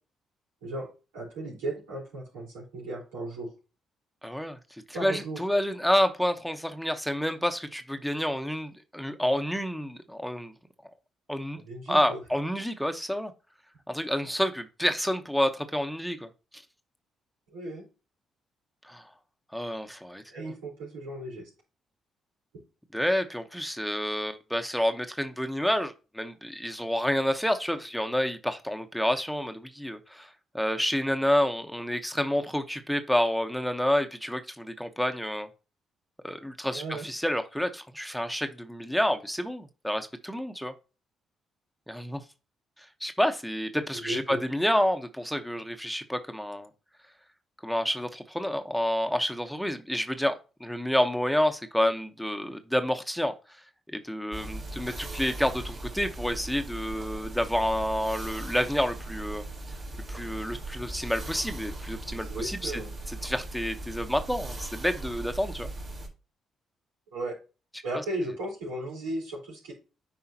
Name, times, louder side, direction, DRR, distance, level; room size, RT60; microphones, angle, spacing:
voice 1, 1.1-3.5 4.9-5.4 11.7-12.2 17.5-17.8 20.3-21.5 36.7-37.1 43.9-44.4 62.1-62.9 67.1-67.4 67.8-69.7, right 1 dB, 90° right, -4 dB, 4.2 m, -35 dB
voice 2, 4.2-4.6 4.9-10.5 11.3-11.6 11.9-13.3 13.9-16.6 18.9-19.0 19.5-20.5 22.9-35.5 36.2-40.7 41.9-42.2 43.0-46.7 47.6-53.6 53.9-59.5 60.1-62.8 63.1-65.7, equal, ahead, 7 dB, 1.0 m, -29 dB
sound 1, 54.3-66.1, right 2 dB, 50° right, 3.3 m, -39 dB
9.4 x 5.0 x 2.9 m, 0.31 s
supercardioid pair, 55°, 0 cm